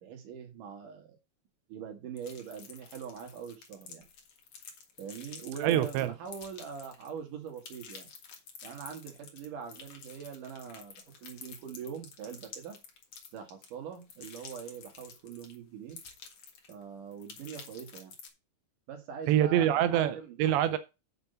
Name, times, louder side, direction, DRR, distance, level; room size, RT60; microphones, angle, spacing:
voice 1, 0.0-1.2 1.7-4.0 5.0-8.1 8.6-11.0 11.2-12.8 13.3-16.0 16.7-18.1 18.9-20.4, right 7 dB, 55° right, 2.7 m, -43 dB
sound 1, 2.2-7.2 7.5-15.5 15.9-16.8 17.1-18.3, left 6 dB, 55° left, 1.9 m, -50 dB
voice 2, 5.6-6.1 19.3-20.8, right 11 dB, 80° right, 2.7 m, -25 dB
6.8 x 5.9 x 6.7 m
omnidirectional pair, 5.4 m